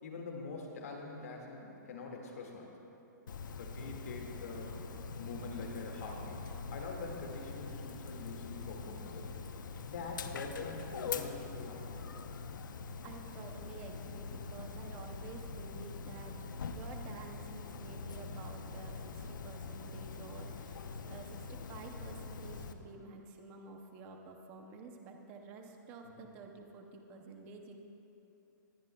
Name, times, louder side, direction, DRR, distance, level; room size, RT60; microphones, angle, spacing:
voice 1, 0.0-2.7 3.6-4.7 5.2-6.4 6.7-9.3 9.9-11.9 26.2-26.3, left 3 dB, 50° left, 0 dB, 2.0 m, -44 dB
Dog, 3.3-22.7, left 4 dB, 70° left, 0.7 m, -44 dB
voice 2, 13.0-16.3 16.7-20.8 21.0-27.9, right 4 dB, 15° right, 4 dB, 0.6 m, -50 dB
19.5 x 13.0 x 2.3 m, 3.0 s
hypercardioid pair, 175°, 11 cm